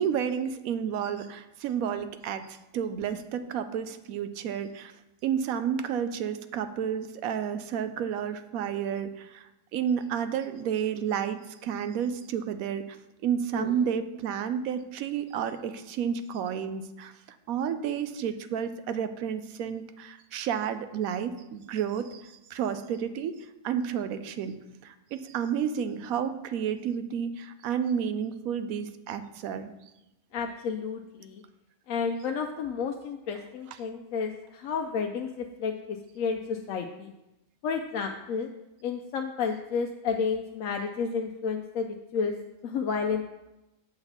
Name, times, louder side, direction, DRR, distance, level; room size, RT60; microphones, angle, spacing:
voice 1, 0.0-4.9 5.2-13.0 13.2-17.1 17.5-24.5 24.8-29.7, right 8 dB, 85° right, 10 dB, 1.1 m, -31 dB
voice 2, 30.3-31.4 31.9-37.1 37.6-38.5 38.8-42.3 42.6-43.2, left 5 dB, 75° left, 3 dB, 1.0 m, -31 dB
7.8 x 4.0 x 6.9 m, 0.94 s
omnidirectional pair, 1.4 m